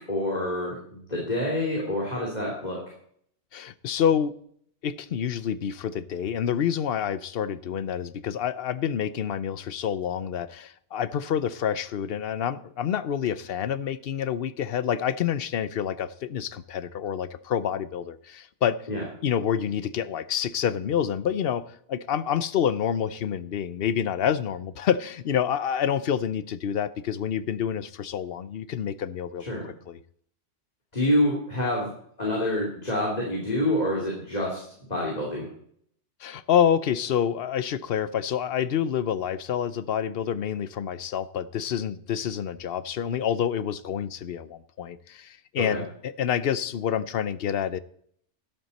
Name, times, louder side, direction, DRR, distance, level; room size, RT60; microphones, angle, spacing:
voice 1, 0.1-2.8 18.9-19.0 29.4-29.6 30.9-31.9 32.2-34.6 34.9-35.5 45.6-45.8, left 1 dB, 35° left, -3 dB, 3.2 m, -27 dB
voice 2, 3.5-4.4 4.8-18.8 19.2-29.5 29.9-30.0 36.2-47.8, left 8 dB, 60° left, 15 dB, 0.8 m, -28 dB
12.5 x 11.0 x 4.2 m, 0.64 s
omnidirectional pair, 1.2 m